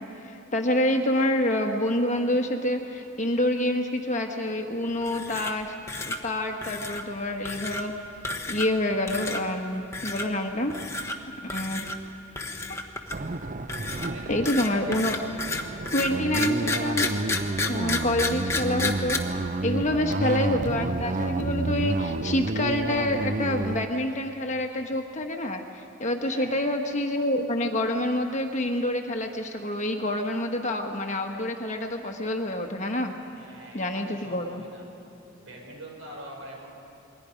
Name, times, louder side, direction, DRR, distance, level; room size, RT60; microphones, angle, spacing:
voice 1, 0.0-5.7 6.1-7.9 8.5-10.7 11.4-11.9 14.3-15.2 15.9-17.1 17.7-19.2 19.6-33.1 33.7-34.6, left 1 dB, 35° left, 4 dB, 1.3 m, -27 dB
sound 1, 5.0-5.6 5.9-6.2 6.6-7.0 7.5-7.8 8.2-8.8 9.1-9.4 9.9-10.3 10.7-11.2 11.5-12.0 12.4-13.3 13.7-19.2, left 2 dB, 15° left, 1.2 m, -31 dB
sound 2, 13.1-23.9, right 2 dB, 35° right, 0.6 m, -30 dB
voice 2, 13.9-15.0 15.8-17.0 26.2-26.6 33.3-34.8 35.4-36.7, right 1 dB, 60° right, -1 dB, 5.8 m, -44 dB
28.0 x 21.5 x 5.2 m, 2.8 s
head